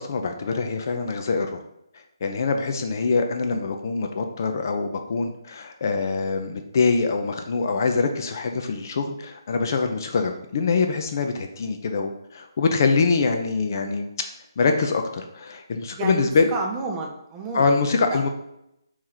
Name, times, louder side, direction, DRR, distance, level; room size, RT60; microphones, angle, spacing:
voice 1, 0.0-1.6 2.2-14.3 14.6-16.5 17.5-18.3, left 4 dB, 45° left, 5 dB, 0.6 m, -24 dB
voice 2, 15.9-17.7 18.1-18.2, right 3 dB, 15° right, 1 dB, 0.6 m, -31 dB
4.1 x 3.1 x 3.9 m, 0.81 s
hypercardioid pair, 155°, 2 cm